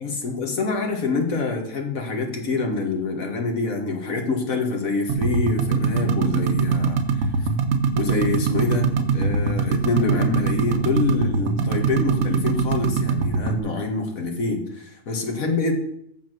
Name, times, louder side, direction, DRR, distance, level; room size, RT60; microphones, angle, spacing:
voice 1, 0.0-7.5 7.9-15.7, left 3 dB, 70° left, 2 dB, 1.9 m, -26 dB
sound 1, 5.1-13.6, right 4 dB, 70° right, 1.1 m, -22 dB
7.2 x 5.9 x 6.1 m, 0.71 s
omnidirectional pair, 1.5 m